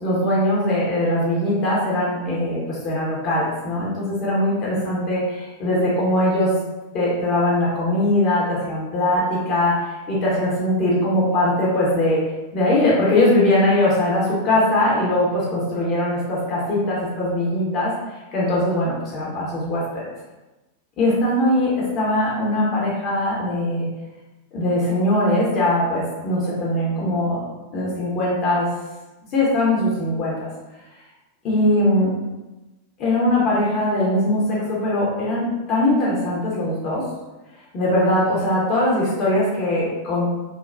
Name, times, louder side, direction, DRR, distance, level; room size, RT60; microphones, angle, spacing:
voice 1, 0.0-6.5 6.9-12.2 12.5-17.9 18.3-20.1 21.0-23.9 24.5-27.4 27.7-28.7 29.3-30.5 31.4-32.1 33.0-37.0 37.7-40.4, left 1 dB, 35° left, -6 dB, 0.8 m, -21 dB
3.3 x 2.2 x 2.6 m, 1.1 s
figure-of-eight pair, 90°, 0 cm